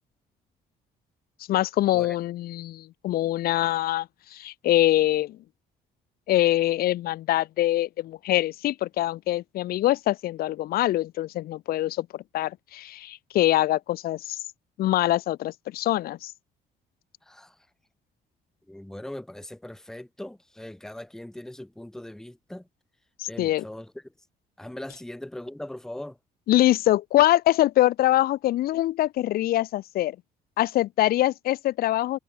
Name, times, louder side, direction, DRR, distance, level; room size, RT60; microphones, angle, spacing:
voice 1, 1.5-5.4 6.3-14.4 14.8-16.3 23.2-23.6 26.5-30.2 30.6-32.2, left 14 dB, 65° left, 0.6 m, -24 dB
voice 2, 18.7-22.7 23.3-23.9 24.6-26.2, left 1 dB, 5° left, 0.9 m, -40 dB
cardioid pair, 110°, 17 cm